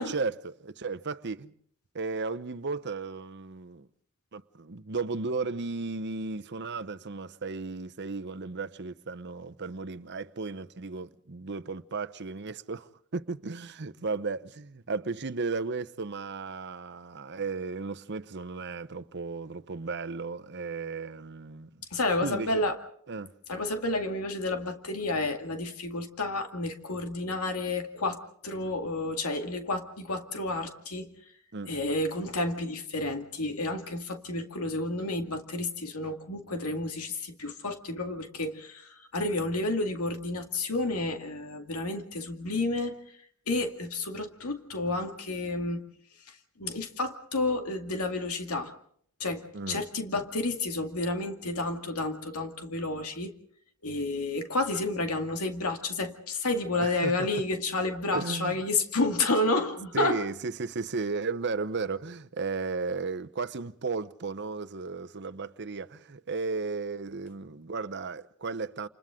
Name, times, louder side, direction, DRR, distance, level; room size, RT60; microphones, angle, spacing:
voice 1, 0.0-1.5 1.9-3.9 4.3-21.8 22.2-22.6 23.1-23.3 31.5-31.7 49.5-49.8 50.1-50.2 56.8-57.3 58.1-58.6 59.9-68.9, right 4 dB, 55° right, 0.9 m, -35 dB
voice 2, 21.9-22.8 23.5-31.3 31.7-43.2 43.5-45.8 46.3-48.7 49.2-53.3 53.8-60.2, left 2 dB, 90° left, 2.2 m, -30 dB
29.0 x 28.5 x 3.7 m
head